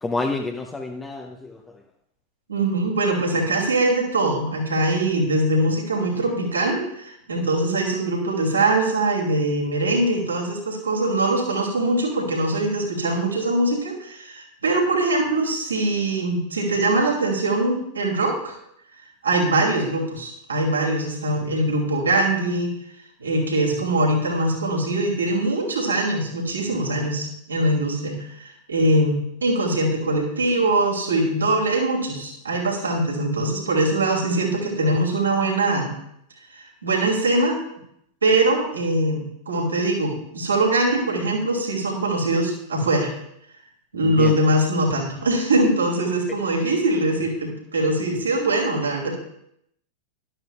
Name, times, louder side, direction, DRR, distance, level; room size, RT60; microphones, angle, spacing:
voice 1, 0.0-1.8 44.0-44.3, left 3 dB, 15° left, 2 dB, 0.8 m, -29 dB
voice 2, 2.5-18.5 19.2-22.7 23.2-35.9 36.5-37.6 38.2-43.1 43.9-49.1, right 2 dB, 75° right, -1 dB, 2.9 m, -22 dB
12.0 x 12.0 x 2.4 m, 0.74 s
figure-of-eight pair, 90°, 0 cm